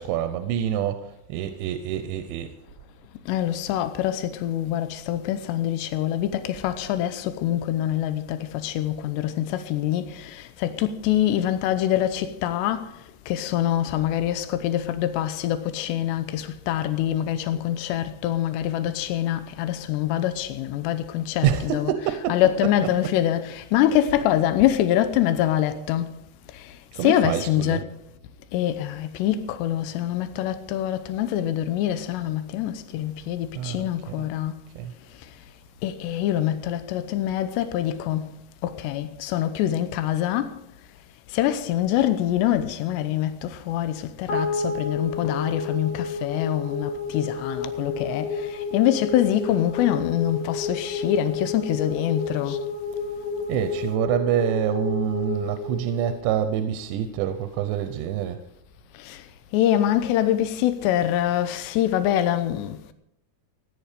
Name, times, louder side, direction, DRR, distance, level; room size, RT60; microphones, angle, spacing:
voice 1, 0.0-2.5 21.4-22.7 26.9-27.8 33.5-34.3 34.8-34.9 53.5-58.4, right 10 dB, 90° right, 3.1 m, -26 dB
voice 2, 3.3-12.9 13.3-26.1 26.5-26.7 27.0-27.9 28.5-34.5 35.8-38.3 38.6-40.6 41.3-52.6 59.0-59.2 59.5-62.8, left 12 dB, 80° left, 3.0 m, -25 dB
sound 1, 44.3-56.8, left 4 dB, 65° left, 4.4 m, -31 dB
16.0 x 10.5 x 5.0 m
omnidirectional pair, 5.0 m